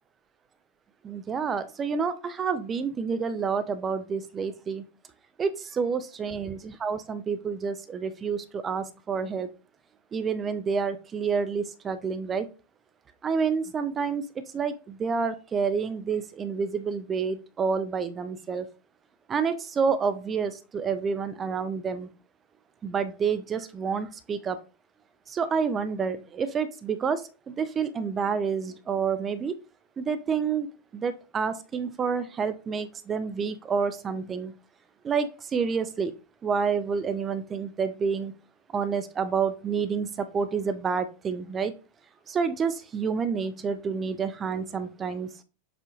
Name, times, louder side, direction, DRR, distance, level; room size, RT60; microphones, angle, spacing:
voice 1, 1.0-4.8 5.4-9.5 10.1-12.5 13.2-14.3 14.5-18.7 19.3-22.1 22.8-24.6 25.3-29.5 30.0-30.7 30.9-34.5 35.0-36.1 36.4-38.3 38.7-41.7 42.3-45.3, right 5 dB, 20° right, 12 dB, 0.5 m, -29 dB
7.0 x 2.5 x 3.0 m, 0.33 s
figure-of-eight pair, 90°, 0 cm